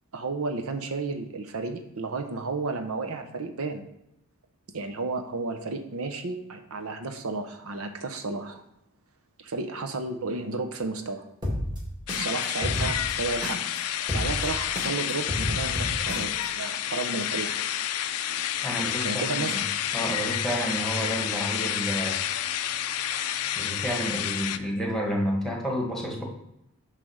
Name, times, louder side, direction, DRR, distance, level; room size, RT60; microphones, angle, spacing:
voice 1, 0.1-3.9 4.7-8.6 9.4-11.3 12.2-13.6 14.1-17.6 19.0-19.5, right 3 dB, 70° right, 6 dB, 0.7 m, -32 dB
sound 1, 11.4-13.8 14.1-16.4, equal, 20° right, 1.8 m, -31 dB
sound 2, 12.1-24.6, left 11 dB, 90° left, 0.5 m, -29 dB
voice 2, 18.6-19.6 19.9-22.3 23.5-26.2, equal, ahead, -1 dB, 1.4 m, -30 dB
9.0 x 3.3 x 6.3 m, 0.85 s
head